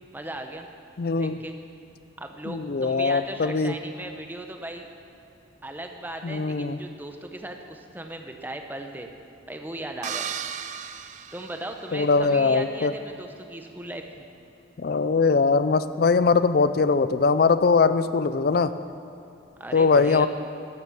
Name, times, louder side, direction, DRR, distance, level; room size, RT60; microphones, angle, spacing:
voice 1, 0.1-0.7 1.1-1.6 2.2-4.9 5.6-9.1 9.5-10.3 11.3-14.3 19.6-20.3, right 1 dB, 10° right, 4 dB, 0.7 m, -37 dB
voice 2, 1.0-1.4 2.5-3.7 6.2-6.8 11.9-12.9 14.8-18.7 19.7-20.3, left 4 dB, 55° left, 13 dB, 0.4 m, -21 dB
sound 1, 10.0-12.3, right 8 dB, 40° right, 0.4 m, -35 dB
12.5 x 7.4 x 7.0 m, 2.9 s
head